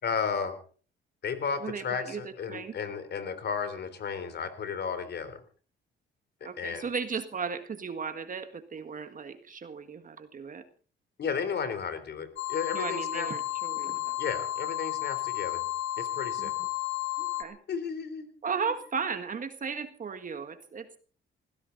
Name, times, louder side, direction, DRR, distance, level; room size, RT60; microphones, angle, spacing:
voice 1, 0.0-0.6 1.2-5.4 6.4-6.9 11.2-13.3 14.2-15.6 16.0-16.5 17.7-18.3, left 6 dB, 55° left, 11 dB, 3.6 m, -33 dB
voice 2, 1.6-2.2 2.5-2.7 6.4-10.6 12.7-14.2 16.4-16.5 17.2-17.6 18.4-21.0, right 5 dB, 40° right, 9 dB, 1.7 m, -36 dB
sound 1, 12.4-17.4, left 15 dB, 80° left, 1.6 m, -32 dB
20.0 x 16.0 x 4.0 m, 0.41 s
cardioid pair, 90°, 20 cm